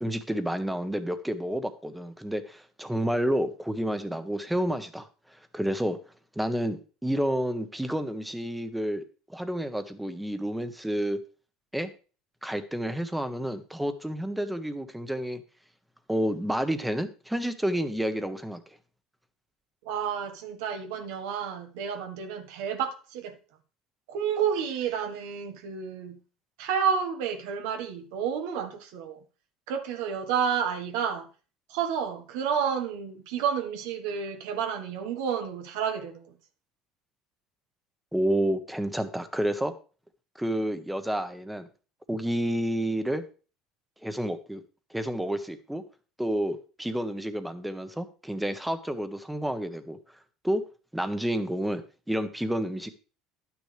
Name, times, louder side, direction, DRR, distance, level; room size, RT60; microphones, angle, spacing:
voice 1, 0.0-6.0 6.3-9.0 9.3-11.2 11.7-11.9 12.4-15.4 16.1-18.6 38.1-39.7 40.3-41.7 42.1-43.2 44.0-44.6 44.9-45.8 46.2-50.0 50.4-50.6 50.9-52.9, right 1 dB, 5° right, 1.2 m, -30 dB
voice 2, 19.8-23.4 24.1-26.2 26.6-29.2 29.7-31.3 31.7-36.2, right 7 dB, 80° right, 1.5 m, -30 dB
11.0 x 9.5 x 3.4 m
supercardioid pair, 105°, 0 cm